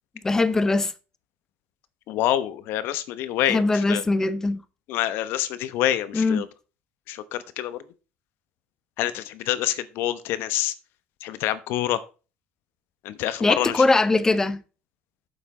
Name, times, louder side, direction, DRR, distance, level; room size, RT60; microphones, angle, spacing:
voice 1, 0.2-0.9 3.5-4.6 6.1-6.4 13.4-14.6, left 3 dB, 10° left, 0.7 m, -21 dB
voice 2, 2.1-4.0 4.9-6.5 7.1-7.8 9.0-10.7 11.2-12.0 13.0-13.8, left 12 dB, 65° left, 1.0 m, -26 dB
8.9 x 7.2 x 4.2 m
cardioid pair, 150°, 4 cm